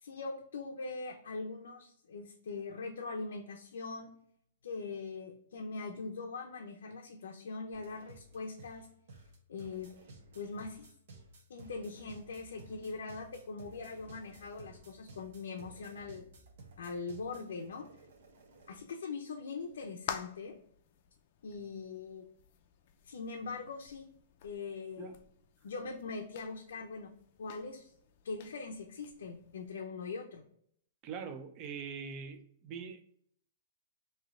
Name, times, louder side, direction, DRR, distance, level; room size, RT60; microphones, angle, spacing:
voice 1, 0.0-4.1 4.6-8.9 9.5-9.9 10.3-10.9 11.5-16.2 16.8-17.9 18.7-20.5 21.4-22.2 23.0-24.1 24.4-25.2 25.6-27.1 27.4-27.9 28.2-30.4, left 4 dB, 90° left, 0 dB, 0.6 m, -42 dB
sound 1, 7.7-18.8, right 2 dB, 65° right, 0.9 m, -55 dB
sound 2, 19.6-29.7, left 8 dB, 45° left, 0.4 m, -50 dB
voice 2, 31.0-33.0, right 6 dB, 25° right, 8 dB, 0.4 m, -43 dB
3.2 x 2.8 x 3.6 m, 0.66 s
hypercardioid pair, 165°, 0 cm